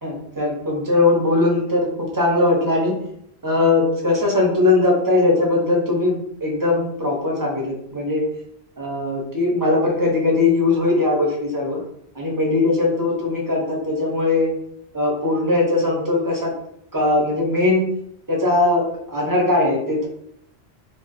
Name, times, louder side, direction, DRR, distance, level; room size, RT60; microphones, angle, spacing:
voice 1, 0.0-2.9 3.4-8.2 8.8-11.8 12.1-14.5 14.9-16.5 16.9-17.9 18.3-18.8 19.1-20.1, left 2 dB, 20° right, -2 dB, 0.6 m, -20 dB
2.5 x 2.2 x 3.9 m, 0.73 s
omnidirectional pair, 1.1 m